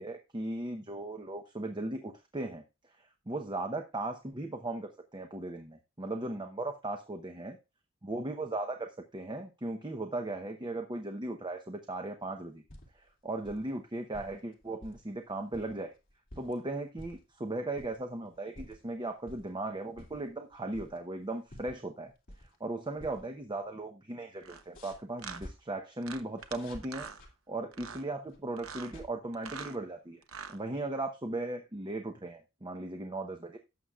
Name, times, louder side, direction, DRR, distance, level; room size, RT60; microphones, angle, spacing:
voice 1, 0.0-2.6 3.0-7.6 8.0-12.6 12.9-15.9 16.4-22.1 22.4-27.1 27.5-30.2 30.5-33.6, right 2 dB, 25° right, 5 dB, 0.9 m, -37 dB
sound 1, 12.5-13.1 13.4-13.7 14.1-15.0 15.4-16.6 17.0-17.3 17.7-18.0 18.3-18.9 19.3-19.5 19.9-21.2 21.5-22.7 23.0-23.3 23.5-23.6 24.5-25.5 26.4-27.3 28.3-29.1, left 1 dB, 45° left, 2.6 m, -50 dB
sound 2, 24.4-24.6 25.2-25.4 26.0-26.6 26.8-27.2 27.7-28.0 28.6-28.9 29.3-29.8 30.2-30.6, right 6 dB, 80° right, 0.9 m, -43 dB
17.5 x 7.0 x 2.4 m, 0.27 s
head